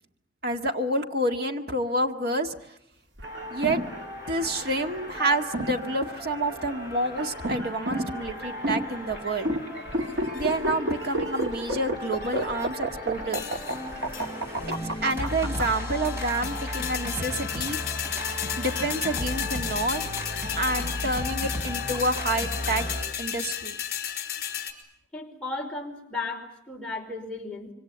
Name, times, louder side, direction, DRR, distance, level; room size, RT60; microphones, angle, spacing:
voice 1, 0.4-2.6 3.5-3.9 4.3-9.5 10.3-13.4 15.0-17.8 18.6-20.0 20.6-22.8 23.2-23.8, right 1 dB, 55° right, 5 dB, 1.9 m, -28 dB
sound 1, 3.2-23.0, left 1 dB, 15° right, 6.4 m, -36 dB
sound 2, 3.2-15.6, right 1 dB, 75° right, 2.4 m, -31 dB
sound 3, 10.1-10.6 11.1-11.6 12.1-12.7 13.3-13.8 14.1-14.3 14.7-14.8 15.1-15.8 16.0-24.7, left 10 dB, 50° left, 5.2 m, -34 dB
voice 2, 25.1-27.7, left 3 dB, 5° left, -1 dB, 5.1 m, -35 dB
26.0 x 24.5 x 8.7 m, 0.75 s
head